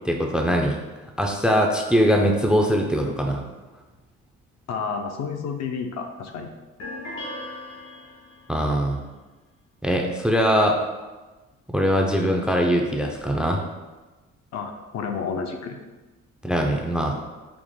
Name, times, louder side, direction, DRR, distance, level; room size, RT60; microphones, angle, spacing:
voice 1, 0.1-0.8 1.2-3.4 8.5-9.0 9.8-10.8 11.7-13.6 16.4-17.2, equal, 5° right, 2 dB, 0.4 m, -21 dB
voice 2, 4.7-6.5 14.5-15.8, left 5 dB, 60° left, 4 dB, 0.5 m, -30 dB
sound 1, 6.8-8.6, left 1 dB, 80° left, 1.4 m, -37 dB
4.8 x 2.0 x 3.6 m, 1.2 s
cardioid pair, 90°, 30 cm